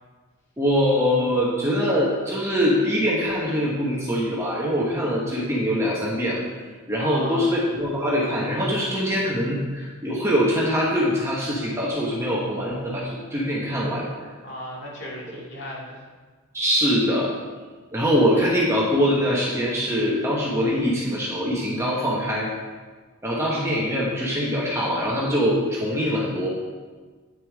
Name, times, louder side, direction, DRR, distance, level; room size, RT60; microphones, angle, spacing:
voice 1, 0.6-6.4 6.9-14.1 16.5-17.3 17.9-22.5 23.2-26.5, equal, 15° right, -5 dB, 1.1 m, -23 dB
voice 2, 7.0-7.5 14.4-16.0, equal, 55° left, -4 dB, 2.1 m, -35 dB
9.0 x 6.8 x 3.5 m, 1.4 s
head